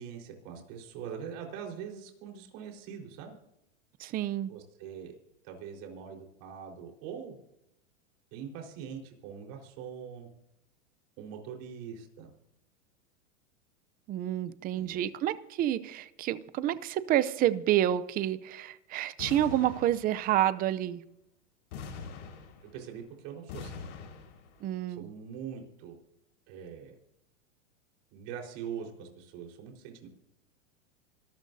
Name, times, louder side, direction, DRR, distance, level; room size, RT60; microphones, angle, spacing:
voice 1, 0.0-3.3 4.5-5.1 5.4-7.4 8.3-10.3 11.2-12.3 14.7-15.1 22.6-23.8 25.0-26.0 26.5-26.9 28.1-30.1, right 7 dB, 50° right, 1 dB, 4.4 m, -43 dB
voice 2, 4.0-4.5 14.1-21.0 24.6-25.1, right 12 dB, 25° right, 16 dB, 0.6 m, -29 dB
sound 1, 19.2-20.5 21.7-23.0 23.5-24.6, left 5 dB, 65° left, 4.8 m, -43 dB
26.0 x 13.0 x 2.7 m, 0.80 s
supercardioid pair, 145°, 39 cm